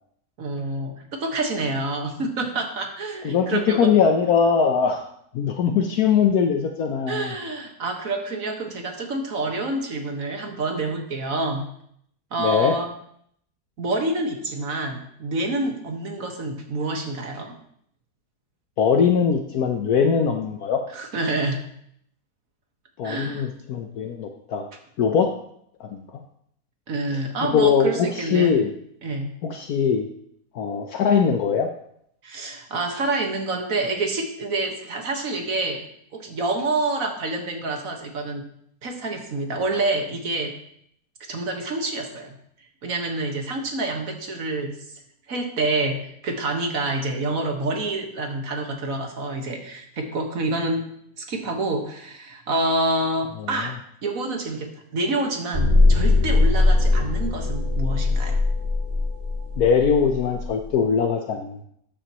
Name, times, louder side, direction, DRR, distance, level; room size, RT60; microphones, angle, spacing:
voice 1, 0.4-3.9 7.1-11.6 12.3-12.9 13.8-17.5 20.9-21.6 23.0-23.5 26.9-28.6 29.0-29.3 32.2-35.8 36.1-38.4 38.8-40.5 41.3-42.4 42.8-44.8 45.3-50.8 51.2-53.7 54.0-58.4, right 2 dB, 55° right, 3 dB, 1.9 m, -27 dB
voice 2, 3.2-5.0 5.3-7.3 12.4-12.7 18.8-20.8 23.0-24.7 25.0-25.3 25.8-26.0 27.4-28.7 29.4-30.1 30.5-31.7 53.4-53.7 59.6-61.7, left 6 dB, 65° left, 4 dB, 1.2 m, -21 dB
sound 1, 55.5-60.5, left 2 dB, 25° right, 1.9 m, -20 dB
13.5 x 9.0 x 3.0 m, 0.70 s
omnidirectional pair, 1.8 m